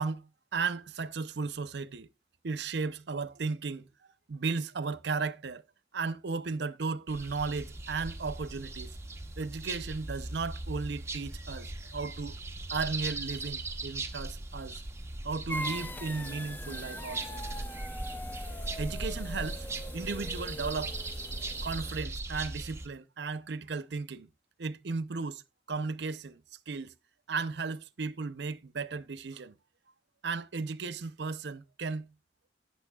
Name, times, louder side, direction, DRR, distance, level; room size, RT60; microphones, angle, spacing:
voice 1, 0.0-2.1 2.4-3.9 4.3-5.6 5.9-9.0 9.4-12.4 12.7-14.8 15.2-17.5 18.8-19.7 19.9-21.0 21.6-24.3 24.6-25.4 25.7-26.9 27.3-29.5 30.2-32.1, right 4 dB, 65° right, 0.6 m, -35 dB
sound 1, 7.1-22.9, right 2 dB, 15° right, 0.9 m, -39 dB
sound 2, 15.5-22.0, left 1 dB, 10° left, 0.4 m, -42 dB
17.5 x 6.7 x 2.3 m
head